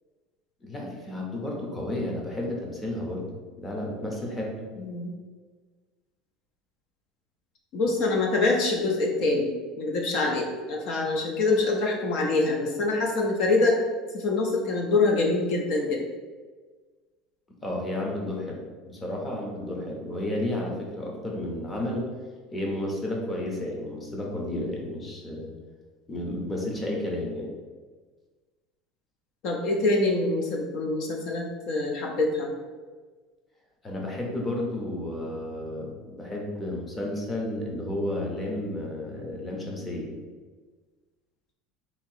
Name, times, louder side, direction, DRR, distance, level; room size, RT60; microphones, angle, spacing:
voice 1, 0.6-3.2 3.6-4.5 17.6-18.6 18.9-22.1 22.5-25.5 26.1-27.5 33.8-40.1, left 1 dB, 10° left, -1 dB, 0.7 m, -32 dB
voice 2, 4.8-5.1 7.7-13.8 14.1-16.0 19.6-19.8 29.4-32.5, left 3 dB, 50° left, 1 dB, 0.5 m, -25 dB
3.9 x 2.9 x 4.4 m, 1.4 s
cardioid pair, 170°, 0 cm